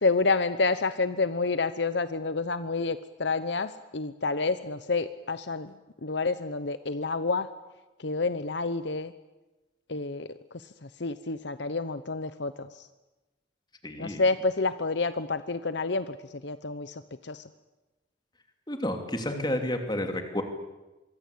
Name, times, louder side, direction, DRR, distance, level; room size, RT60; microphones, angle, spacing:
voice 1, 0.0-5.7 6.0-7.5 8.0-9.1 9.9-10.3 10.8-12.7 14.0-16.2 16.4-17.4 19.3-19.6, left 3 dB, 65° left, 12 dB, 0.9 m, -29 dB
voice 2, 13.8-14.2 18.7-20.4, left 1 dB, 20° left, 5 dB, 3.0 m, -30 dB
25.5 x 23.0 x 8.6 m, 1.1 s
head